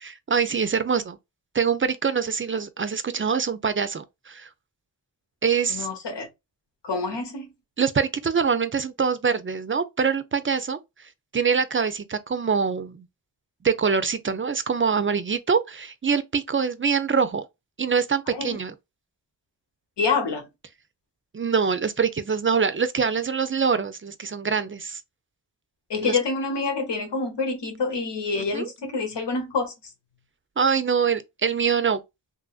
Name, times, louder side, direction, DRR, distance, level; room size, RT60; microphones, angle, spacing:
voice 1, 0.0-1.2 1.5-4.5 5.4-5.9 7.8-13.1 13.6-17.4 17.8-18.7 21.3-25.0 26.0-26.2 28.4-28.7 30.6-32.0, right 6 dB, 30° right, 0.4 m, -24 dB
voice 2, 5.7-6.3 6.8-7.5 18.3-18.6 20.0-20.5 25.9-29.7, left 4 dB, 90° left, 1.0 m, -27 dB
2.9 x 2.5 x 2.3 m
wide cardioid pair, 75°, 41 cm